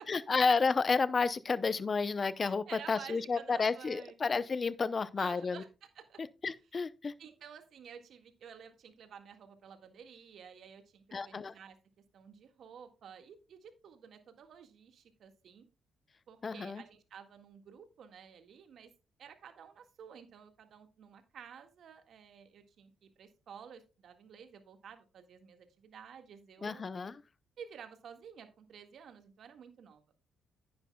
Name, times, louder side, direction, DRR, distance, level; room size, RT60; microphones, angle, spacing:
voice 1, 0.1-5.6 6.2-7.1 11.1-11.5 16.4-16.8 26.6-27.2, left 4 dB, 35° left, 0.6 m, -31 dB
voice 2, 2.4-4.1 5.2-6.2 7.2-11.8 12.1-15.7 16.3-18.9 19.2-26.8 27.6-30.0, right 7 dB, 65° right, 1.8 m, -52 dB
10.0 x 10.0 x 2.3 m
cardioid pair, 90°, 0 cm